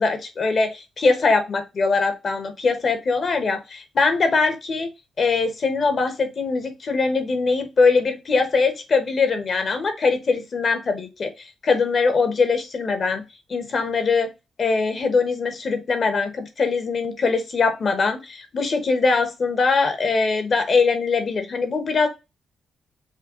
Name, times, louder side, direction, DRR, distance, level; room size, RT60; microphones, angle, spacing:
voice 1, 0.0-4.9 5.2-13.2 13.5-14.3 14.6-22.1, left 4 dB, 50° left, 7 dB, 1.1 m, -22 dB
5.6 x 2.3 x 3.7 m, 0.25 s
cardioid pair, 70°, 0 cm